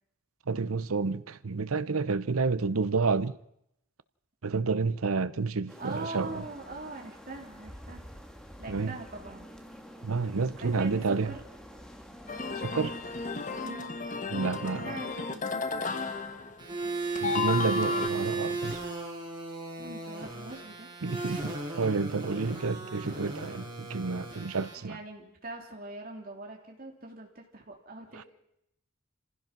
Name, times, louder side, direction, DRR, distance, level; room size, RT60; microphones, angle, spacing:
voice 1, 0.5-3.4 4.4-6.4 8.7-8.9 10.0-11.3 12.6-13.0 14.3-14.9 17.2-18.8 21.0-25.0, right 4 dB, 85° right, 0.8 m, -30 dB
sound 1, 5.7-13.7, equal, 5° left, 1.6 m, -48 dB
voice 2, 5.8-8.0 8.6-9.5 10.6-11.0 11.2-11.4 13.6-13.9 14.6-15.9 19.8-20.9 24.8-28.3, right 2 dB, 40° right, 3.4 m, -42 dB
sound 2, 12.3-16.9 17.1-18.1, left 4 dB, 35° left, 1.2 m, -33 dB
sound 3, 16.6-24.7, right 3 dB, 20° right, 7.6 m, -36 dB
27.5 x 16.0 x 6.0 m
head